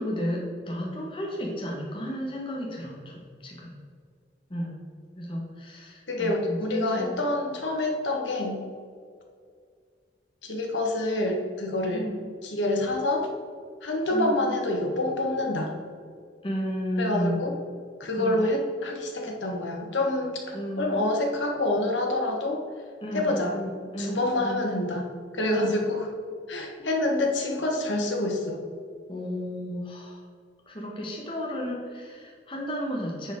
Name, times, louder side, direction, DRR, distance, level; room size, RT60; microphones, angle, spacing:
voice 1, 0.0-3.7 4.5-4.8 5.2-7.2 11.9-12.2 14.1-14.5 16.4-17.4 18.2-18.4 20.5-21.0 23.0-24.6 25.5-25.8 26.8-27.1 29.1-30.2 30.7-33.3, equal, 25° left, -2 dB, 1.2 m, -33 dB
voice 2, 6.1-8.6 10.4-12.1 12.4-13.3 13.8-15.7 17.0-17.5 18.0-22.6 23.1-23.5 24.0-26.1 26.5-28.6, left 2 dB, 85° left, 1 dB, 1.3 m, -27 dB
9.9 x 4.4 x 3.7 m, 2.1 s
head